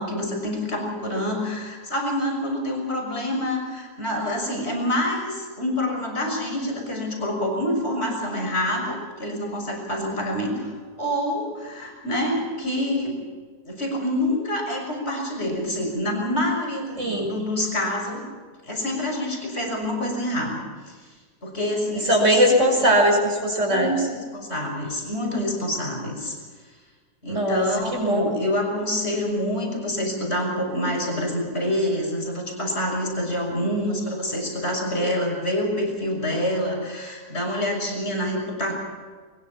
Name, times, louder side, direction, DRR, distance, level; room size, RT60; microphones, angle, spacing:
voice 1, 0.0-10.7 11.0-13.2 13.6-18.2 18.6-21.1 21.4-22.4 23.7-26.3 27.2-38.7, left 1 dB, 40° left, 1 dB, 6.4 m, -27 dB
voice 2, 17.0-17.3 22.1-23.9 27.3-27.7 27.9-28.2, equal, 50° right, 2 dB, 5.7 m, -20 dB
22.5 x 22.0 x 5.9 m, 1.5 s
omnidirectional pair, 1.6 m